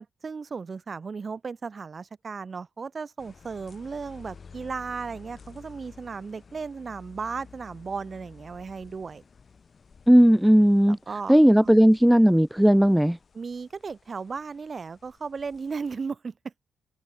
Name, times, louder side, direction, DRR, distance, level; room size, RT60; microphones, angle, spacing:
voice 1, 0.0-9.2 10.9-11.3 11.6-11.7 13.3-16.5, right 5 dB, 45° right, 3.4 m, -35 dB
sound 1, 3.2-16.0, left 5 dB, 45° left, 6.5 m, -52 dB
voice 2, 10.1-11.0 11.3-13.2, equal, 5° right, 0.7 m, -17 dB
hypercardioid pair, 40°, 0 cm